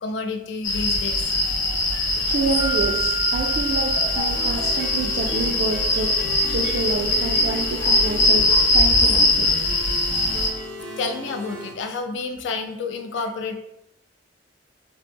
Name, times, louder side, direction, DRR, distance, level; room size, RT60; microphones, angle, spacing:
voice 1, 0.0-1.2 6.2-6.4 8.4-8.5 11.0-13.6, left 4 dB, 70° left, 6 dB, 0.3 m, -29 dB
sound 1, 0.6-10.5, left 2 dB, 90° left, 0.8 m, -21 dB
voice 2, 2.3-6.1 6.4-8.4 8.7-9.6, right 3 dB, 55° right, -3 dB, 0.3 m, -28 dB
Mallet percussion, 2.6-5.1, right 8 dB, 25° left, 0.6 m, -34 dB
sound 2, 4.3-11.7, equal, 85° right, 0.8 m, -36 dB
2.8 x 2.0 x 3.4 m, 0.80 s
head